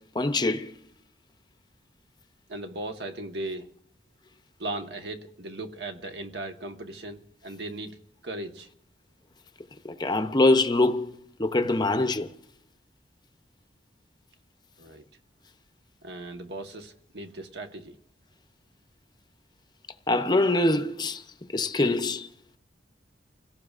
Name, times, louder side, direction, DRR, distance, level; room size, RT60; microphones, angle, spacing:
voice 1, 0.1-0.7 9.8-12.3 20.1-21.2 21.5-22.3, left 2 dB, 25° left, 0.6 m, -24 dB
voice 2, 2.5-3.7 4.6-8.0 8.2-8.7 14.8-15.0 16.0-18.0, right 2 dB, 65° right, 1.2 m, -37 dB
29.5 x 17.5 x 2.5 m
head